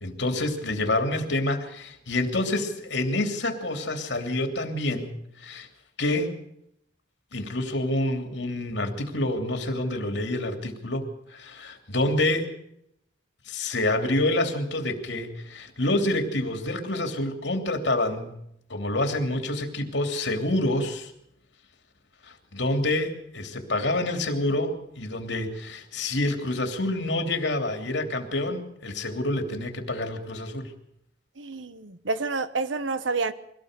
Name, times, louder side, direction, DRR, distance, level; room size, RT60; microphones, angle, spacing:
voice 1, 0.0-5.7 6.0-6.4 7.3-12.5 13.5-18.4 18.7-21.1 22.2-30.7, left 1 dB, 65° left, 5 dB, 3.0 m, -27 dB
voice 2, 31.4-33.3, right 4 dB, 85° right, 13 dB, 1.1 m, -29 dB
23.0 x 17.5 x 6.7 m, 0.76 s
head